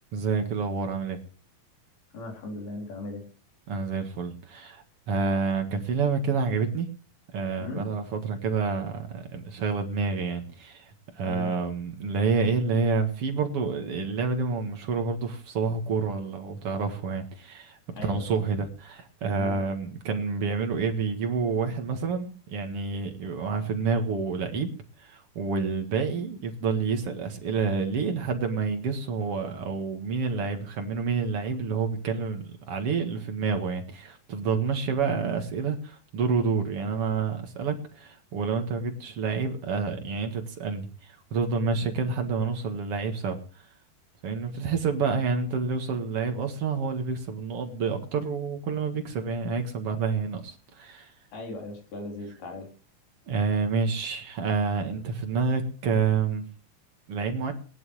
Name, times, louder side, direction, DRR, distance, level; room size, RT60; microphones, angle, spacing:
voice 1, 0.1-1.2 3.7-6.9 7.3-24.7 25.0-43.4 44.2-51.1 53.3-56.5 57.1-57.5, right 5 dB, 50° right, 5 dB, 2.1 m, -28 dB
voice 2, 2.1-3.2 7.6-7.9 11.2-11.5 17.9-18.3 19.4-19.6 51.3-52.7, left 2 dB, 85° left, 1 dB, 5.6 m, -37 dB
20.0 x 11.0 x 3.2 m, 0.39 s
omnidirectional pair, 4.3 m